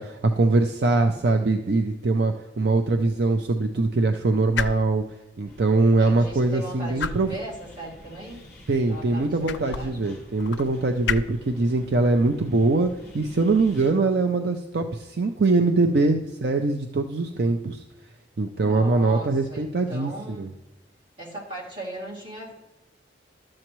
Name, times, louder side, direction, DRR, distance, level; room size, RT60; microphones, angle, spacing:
voice 1, 0.0-5.0 5.4-7.3 8.7-12.9 13.1-17.8 18.4-20.5, right 3 dB, 60° right, 5 dB, 0.5 m, -22 dB
sound 1, 1.5-15.1, left 6 dB, 70° left, 0.4 m, -38 dB
sound 2, 5.5-13.9, left 1 dB, 15° left, 2.2 m, -48 dB
voice 2, 6.0-8.4 8.9-10.0 18.6-20.5 21.2-22.5, right 1 dB, 30° right, -6 dB, 2.6 m, -38 dB
12.5 x 7.5 x 3.1 m, 1.0 s
head